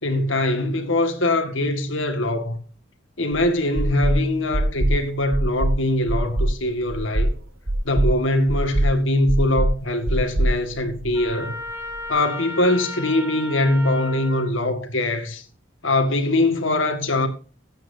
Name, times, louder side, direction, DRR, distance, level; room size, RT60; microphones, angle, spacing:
voice 1, 0.0-2.6 3.2-7.3 7.8-11.6 12.1-15.4 15.8-17.3, left 1 dB, 80° left, 1.9 m, -22 dB
sound 1, 3.3-3.4 3.8-4.2 4.5-5.0 5.3-5.8 6.1-6.5 6.9-7.3 7.7-8.1 8.5-8.9 9.3-9.7 10.1-11.3, right 1 dB, 85° right, 2.2 m, -21 dB
Trumpet, 11.1-14.5, left 1 dB, 15° right, 3.0 m, -34 dB
15.5 x 9.1 x 2.8 m
head